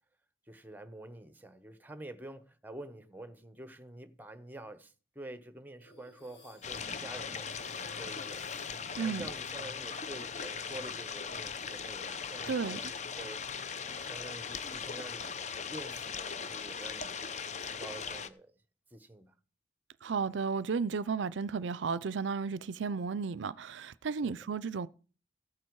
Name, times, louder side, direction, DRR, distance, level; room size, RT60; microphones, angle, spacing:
voice 1, 0.5-8.4 9.0-12.8 13.2-13.6 14.0-15.4 15.7-17.2 17.6-18.5 18.9-19.4 24.2-24.4, right 1 dB, 10° right, 1.0 m, -48 dB
sound 1, 5.8-13.2 13.5-15.0, left 3 dB, 65° left, 6.5 m, -57 dB
sound 2, 6.6-18.3, left 6 dB, 35° left, 0.7 m, -39 dB
voice 2, 9.0-9.3 12.5-12.8 20.0-24.9, right 5 dB, 75° right, 0.5 m, -33 dB
15.0 x 8.7 x 4.7 m
head